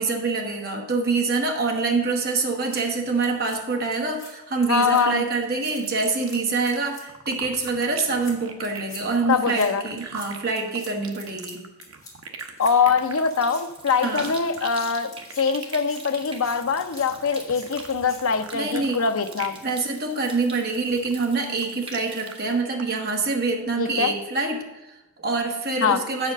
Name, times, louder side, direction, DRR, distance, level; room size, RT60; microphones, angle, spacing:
voice 1, 0.0-11.6 14.0-14.3 18.5-19.0 19.6-26.3, right 3 dB, 45° right, 2 dB, 1.2 m, -25 dB
sound 1, 2.4-2.8 3.2-3.6 3.9-4.3 4.6-5.0 5.3-5.7 6.0-6.4 6.7-7.0 7.3-7.7 8.0-8.3 8.6-9.0 9.3-9.7 10.0-10.3 10.6-10.9 11.2-11.5 11.8-12.1 12.4-12.7 13.3-13.6 13.9-15.4 15.7-16.5 16.8-17.0 17.3-17.6 17.9-18.2, left 3 dB, 15° left, 1.9 m, -44 dB
voice 2, 4.7-5.2 9.3-9.8 12.6-15.1 15.4-19.6 23.8-24.1 25.8-26.0, left 5 dB, 70° left, 9 dB, 0.6 m, -23 dB
sound 2, 5.8-6.8 7.1-19.6 19.9-20.3 20.7-22.3 22.8-22.9, right 5 dB, 70° right, 0.9 m, -41 dB
Stream, 13.0-22.5, right 3 dB, 25° right, 1.1 m, -46 dB
8.3 x 5.0 x 6.6 m, 1.0 s
head